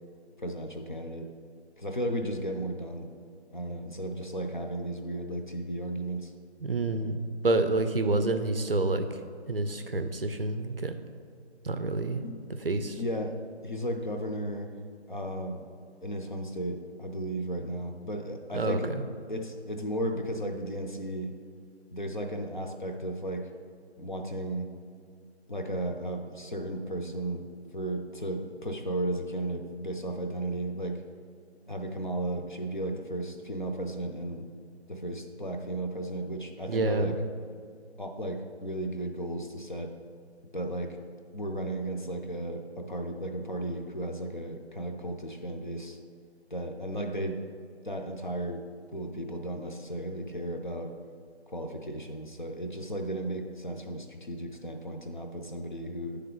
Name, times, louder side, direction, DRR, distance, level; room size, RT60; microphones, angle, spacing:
voice 1, 0.4-1.3 1.8-3.1 3.5-6.3 12.2-12.4 13.0-13.4 13.6-14.7 15.1-15.6 16.0-18.9 19.3-21.3 21.9-23.5 24.0-24.7 25.5-27.5 27.7-31.0 31.7-34.5 34.9-37.1 38.0-39.9 40.5-41.0 41.3-46.0 46.5-47.4 47.8-48.6 48.9-50.9 51.5-56.2, right 1 dB, 45° left, 3 dB, 0.5 m, -34 dB
voice 2, 6.6-7.2 7.4-9.2 9.5-11.0 11.6-12.2 12.6-13.0 18.5-18.9 36.7-37.2, right 2 dB, 55° right, 8 dB, 0.5 m, -28 dB
9.4 x 3.4 x 3.7 m, 2.1 s
figure-of-eight pair, 175°, 34 cm